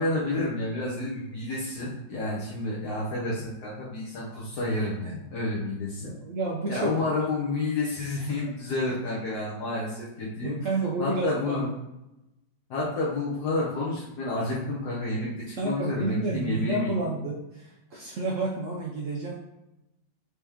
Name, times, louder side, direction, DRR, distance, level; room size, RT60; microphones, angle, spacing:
voice 1, 0.0-6.1 6.7-10.6 11.0-11.7 12.7-16.9, left 2 dB, 65° left, -6 dB, 1.2 m, -30 dB
voice 2, 6.0-6.9 10.4-11.6 15.6-19.3, right 2 dB, 75° right, -3 dB, 0.7 m, -30 dB
4.7 x 2.8 x 3.4 m, 0.91 s
omnidirectional pair, 2.1 m